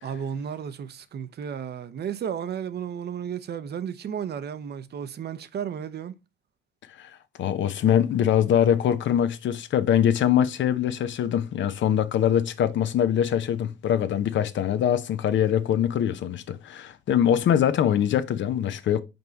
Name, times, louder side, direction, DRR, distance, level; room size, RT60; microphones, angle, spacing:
voice 1, 0.0-6.1, right 8 dB, 55° right, 0.7 m, -33 dB
voice 2, 7.4-19.0, left 9 dB, 70° left, 0.8 m, -23 dB
5.3 x 4.5 x 4.0 m
cardioid pair, 90°, 20 cm